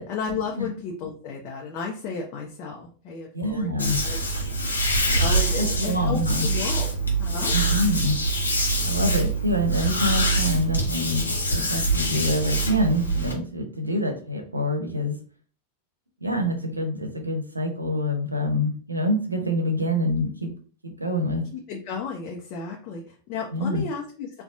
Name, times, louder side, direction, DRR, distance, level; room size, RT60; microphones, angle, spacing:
voice 1, 0.0-4.2 5.1-6.9 7.2-7.5 21.5-24.4, left 5 dB, 40° left, 0 dB, 0.6 m, -33 dB
voice 2, 3.3-4.0 5.6-6.5 7.5-8.2 8.8-15.2 16.2-20.5 20.8-21.4 23.5-23.8, left 1 dB, 85° right, 4 dB, 0.7 m, -26 dB
sound 1, 3.8-13.3, right 2 dB, 80° left, 0.8 m, -24 dB
4.0 x 2.3 x 2.6 m, 0.42 s
figure-of-eight pair, 90°, 0 cm